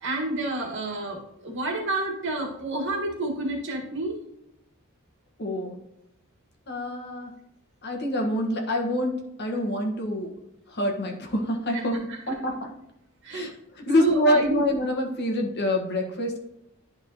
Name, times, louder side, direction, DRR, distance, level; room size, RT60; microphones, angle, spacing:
voice 1, 0.0-4.2 11.7-11.8 12.1-12.2 13.2-13.5 13.9-14.6, right 2 dB, 60° right, 1 dB, 1.7 m, -29 dB
voice 2, 5.4-5.8 6.7-7.3 7.8-10.3 10.7-12.0 12.3-12.7 13.3-16.4, left 1 dB, 55° left, 2 dB, 1.4 m, -26 dB
11.0 x 4.7 x 2.9 m, 0.82 s
head